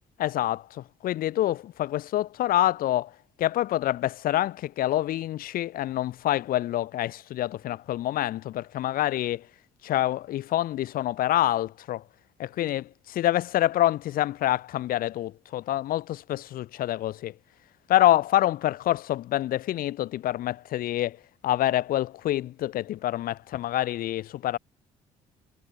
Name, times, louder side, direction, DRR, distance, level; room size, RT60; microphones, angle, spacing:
voice 1, 0.2-9.5 9.8-12.0 12.4-17.4 17.9-21.2 21.4-24.6, left 13 dB, 70° left, 3.1 m, -26 dB
hypercardioid pair, 55°, 16 cm